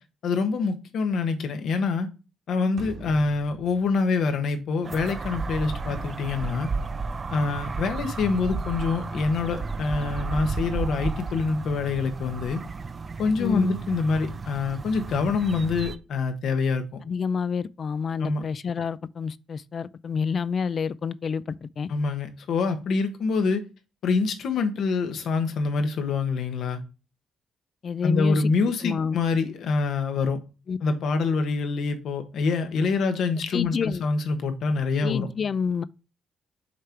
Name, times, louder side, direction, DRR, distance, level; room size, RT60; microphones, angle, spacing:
voice 1, 0.2-2.1 2.5-6.7 7.3-12.6 13.2-16.8 18.2-18.4 21.9-23.6 24.0-26.8 28.0-30.4 30.8-35.3, left 4 dB, 70° left, 1.2 m, -25 dB
sound 1, 2.8-5.2, right 2 dB, 60° right, 1.8 m, -43 dB
sound 2, 4.8-16.0, right 4 dB, 35° right, 0.5 m, -33 dB
voice 2, 13.4-13.7 17.0-21.9 27.8-28.5 28.8-29.2 30.7-30.8 33.5-34.0 35.0-35.8, left 6 dB, 45° left, 0.4 m, -28 dB
6.5 x 3.7 x 4.4 m
cardioid pair, 90°, 0 cm